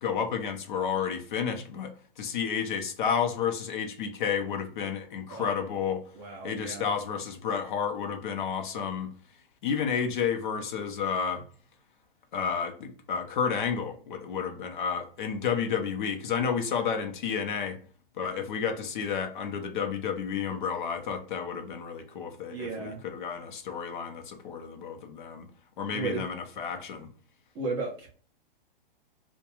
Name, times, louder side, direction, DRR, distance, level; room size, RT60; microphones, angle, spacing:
voice 1, 0.0-6.0 6.4-9.1 9.6-11.4 12.3-17.8 18.2-25.5 25.8-27.1, left 7 dB, 55° left, 0.6 m, -31 dB
voice 2, 5.3-5.6 6.1-6.9 22.5-23.0 25.9-26.2 27.5-28.2, right 3 dB, 15° right, 0.4 m, -35 dB
2.3 x 2.2 x 2.9 m
hypercardioid pair, 145°, 29 cm